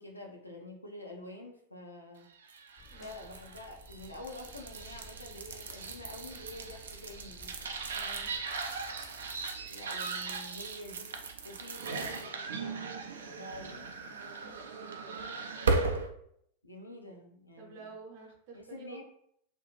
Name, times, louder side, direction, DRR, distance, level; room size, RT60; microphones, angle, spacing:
voice 1, 0.0-2.3 3.0-7.6 9.6-11.1 11.4-12.8 13.1-13.9 16.6-17.9 18.5-19.0, left 1 dB, 85° left, 1 dB, 0.5 m, -47 dB
sound 1, 2.4-16.1, right 4 dB, 65° right, 0.3 m, -37 dB
sound 2, 2.8-9.5, left 3 dB, 35° left, 0.6 m, -55 dB
voice 2, 7.9-8.3 14.0-15.2 17.6-19.0, right 4 dB, 50° right, 1 dB, 0.7 m, -50 dB
2.5 x 2.3 x 3.1 m, 0.70 s
figure-of-eight pair, 90°, 0 cm